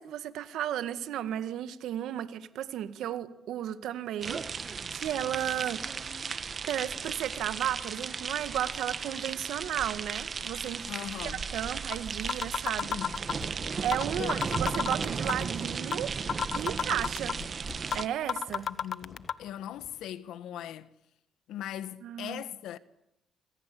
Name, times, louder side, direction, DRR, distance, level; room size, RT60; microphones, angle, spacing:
voice 1, 0.0-5.8 6.7-10.9 11.2-13.0 13.8-16.1 16.5-17.3 17.9-18.7 22.0-22.4, right 11 dB, 80° right, 1.9 m, -34 dB
sound 1, 4.2-18.1, right 5 dB, 40° right, 1.6 m, -35 dB
voice 2, 10.9-11.4 12.8-13.2 14.2-14.5 18.7-20.9 21.5-22.8, left 11 dB, 85° left, 1.5 m, -40 dB
sound 2, 11.4-11.5 11.9-12.0 12.3-13.5 13.9-14.0 14.3-15.5 15.9-16.0 16.3-17.5 17.9-18.0 18.3-19.3, left 8 dB, 65° left, 1.1 m, -30 dB
sound 3, 13.4-14.0 14.3-14.7 15.1-16.0 16.6-20.1, left 4 dB, 35° left, 2.7 m, -53 dB
27.5 x 25.0 x 8.6 m
cardioid pair, 90°, 0 cm